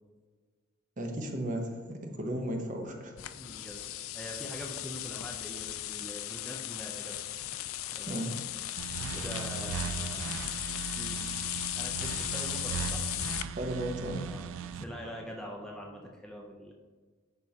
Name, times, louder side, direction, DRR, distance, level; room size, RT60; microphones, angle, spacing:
voice 1, 1.0-3.1 8.1-8.3 13.6-14.2, right 1 dB, 40° right, 3 dB, 0.8 m, -34 dB
sound 1, 3.2-13.4, left 14 dB, 85° left, 0.3 m, -37 dB
voice 2, 3.3-7.2 7.5-7.6 7.9-8.2 9.1-10.5 11.0-11.2 11.7-13.0 13.3-13.5 14.2-16.7, equal, 5° left, -1 dB, 0.5 m, -44 dB
sound 2, 8.8-14.8, right 7 dB, 80° right, 0.3 m, -38 dB
10.5 x 3.6 x 2.8 m, 1.4 s
head